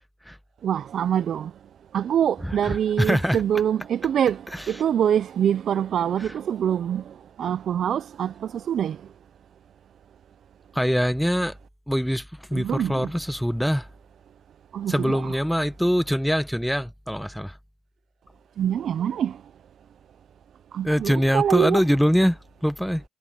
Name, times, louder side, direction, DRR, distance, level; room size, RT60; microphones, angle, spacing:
voice 1, 0.6-1.5 1.9-4.4 4.7-7.0 7.4-9.0 12.5-13.0 14.7-15.3 18.6-19.3 20.7-21.8, right 9 dB, 65° right, 0.5 m, -24 dB
voice 2, 2.4-3.4 4.5-4.7 6.2-6.3 10.7-11.5 11.9-13.9 14.9-17.6 20.8-23.0, equal, ahead, 1.2 m, -23 dB
supercardioid pair, 60°, 0 cm